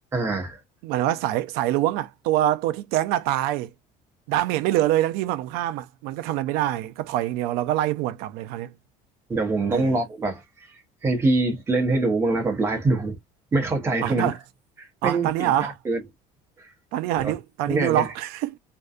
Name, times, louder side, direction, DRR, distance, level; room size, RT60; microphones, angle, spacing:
voice 1, 0.1-0.6 9.3-10.4 11.0-13.2 13.5-14.3 14.8-16.0 16.6-16.7 17.2-17.3 17.7-18.1, right 2 dB, 15° right, 0.8 m, -24 dB
voice 2, 0.8-3.7 4.3-8.7 9.7-10.0 14.0-14.4 15.0-15.7 16.9-18.6, right 13 dB, 65° right, 0.4 m, -25 dB
2.6 x 2.2 x 2.3 m
cardioid pair, 175°, 17 cm